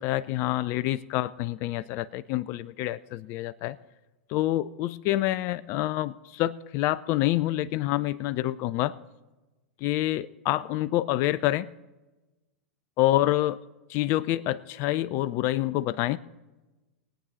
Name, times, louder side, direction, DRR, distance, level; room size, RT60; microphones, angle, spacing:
voice 1, 0.0-3.8 4.3-8.9 9.8-11.7 13.0-13.6 13.9-16.2, left 15 dB, 40° left, 16 dB, 0.4 m, -27 dB
20.5 x 8.9 x 4.1 m, 1.1 s
figure-of-eight pair, 95°, 7 cm